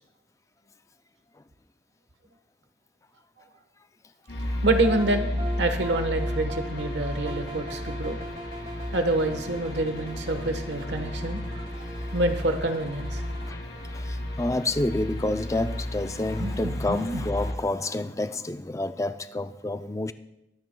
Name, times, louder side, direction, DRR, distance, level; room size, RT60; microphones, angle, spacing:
sound 1, 4.3-17.5, left 1 dB, 85° left, 4.3 m, -33 dB
voice 1, 4.6-5.3 5.6-8.2 8.9-11.6 12.1-13.2 16.4-17.2, right 2 dB, 80° right, 7 dB, 1.2 m, -27 dB
sound 2, 4.7-13.5, right 1 dB, 35° right, 2.2 m, -40 dB
voice 2, 13.9-20.1, left 2 dB, 15° left, 10 dB, 0.4 m, -29 dB
22.5 x 9.2 x 2.3 m, 0.88 s
head